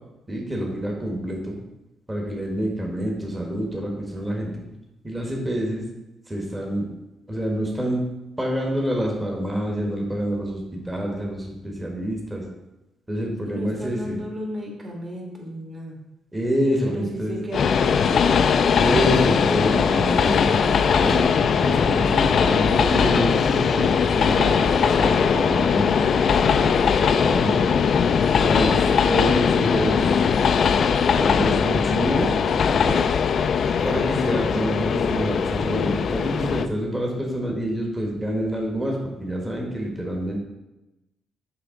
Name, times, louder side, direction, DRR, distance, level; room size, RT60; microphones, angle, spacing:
voice 1, 0.3-1.6 2.1-4.6 5.0-5.8 6.3-6.9 7.3-8.0 8.4-12.4 13.1-14.2 16.3-17.4 18.8-27.7 28.4-30.3 31.0-32.3 32.8-33.0 33.8-40.4, equal, 15° right, -1 dB, 1.4 m, -27 dB
voice 2, 13.4-16.0 16.8-18.5, equal, 35° right, -2 dB, 2.2 m, -34 dB
Train, 17.5-36.7, left 6 dB, 55° left, 0.3 m, -20 dB
6.7 x 4.9 x 3.7 m, 0.97 s
cardioid pair, 90°, 0 cm